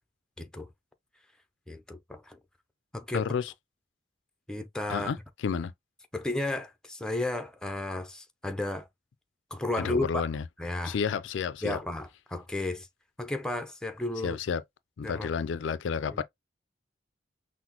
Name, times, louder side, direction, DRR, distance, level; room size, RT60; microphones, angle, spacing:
voice 1, 0.4-0.7 1.7-2.4 2.9-3.3 4.5-5.1 6.1-8.9 9.5-10.2 10.6-11.0 11.6-12.9 13.2-14.4 15.0-15.3 16.1-16.2, left 2 dB, 5° left, 0.5 m, -33 dB
voice 2, 3.1-3.5 4.9-5.2 5.4-5.7 9.8-10.4 10.8-11.8 14.2-14.6 15.0-16.2, left 6 dB, 75° left, 0.4 m, -30 dB
5.8 x 2.0 x 2.9 m
head